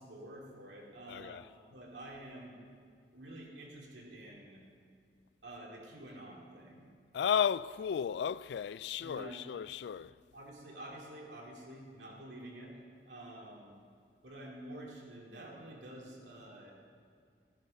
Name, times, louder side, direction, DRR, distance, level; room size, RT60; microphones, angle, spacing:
voice 1, 0.0-1.4 1.7-2.6 3.1-4.6 5.4-6.9 9.0-9.4 10.3-13.7 14.2-16.7, right 1 dB, 85° right, 2.7 m, -49 dB
voice 2, 1.1-1.5 7.1-10.1, left 8 dB, 70° left, 0.3 m, -34 dB
14.0 x 13.5 x 5.3 m
head